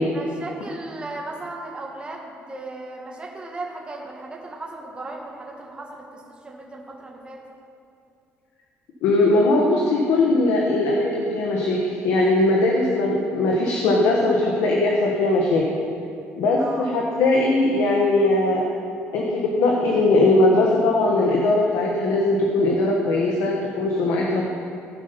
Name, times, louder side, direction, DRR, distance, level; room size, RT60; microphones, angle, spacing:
voice 1, 0.1-7.4 16.6-16.9, right 2 dB, 20° right, -1 dB, 1.7 m, -36 dB
voice 2, 9.0-15.6 16.4-18.6 19.1-24.4, left 2 dB, 90° left, -1 dB, 1.3 m, -20 dB
16.5 x 5.6 x 5.2 m, 2.5 s
cardioid pair, 125°, 5 cm